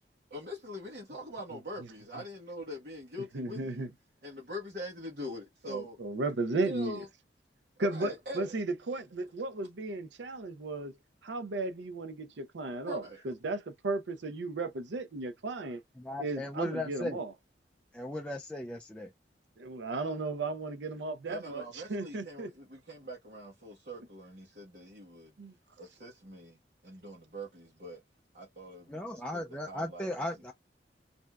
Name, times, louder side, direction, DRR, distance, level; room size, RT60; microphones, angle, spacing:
voice 1, 0.3-3.9 4.2-6.0 6.6-7.1 7.8-8.5 12.8-13.2 21.3-25.3 25.8-26.6 26.8-28.0 28.3-30.1, equal, 55° right, 1.1 m, -43 dB
voice 2, 3.2-3.9 5.6-7.0 7.8-11.0 11.2-15.8 16.2-17.3 19.6-22.5 25.4-25.5, right 2 dB, 85° right, 0.6 m, -35 dB
voice 3, 16.0-17.2 17.9-19.1 28.9-30.5, left 1 dB, 5° left, 0.3 m, -37 dB
3.3 x 2.6 x 2.2 m
head